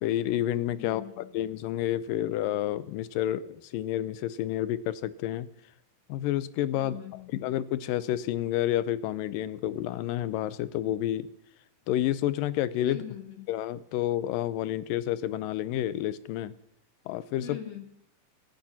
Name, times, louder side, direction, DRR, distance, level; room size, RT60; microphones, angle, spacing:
voice 1, 0.0-5.5 6.1-6.9 7.3-11.3 11.9-13.0 13.5-16.5 17.1-17.6, left 12 dB, 90° left, 16 dB, 2.5 m, -29 dB
voice 2, 0.8-1.3 6.7-7.3 12.8-13.5 17.4-17.8, left 11 dB, 55° left, 5 dB, 2.6 m, -42 dB
26.5 x 9.2 x 5.8 m, 0.74 s
omnidirectional pair, 3.8 m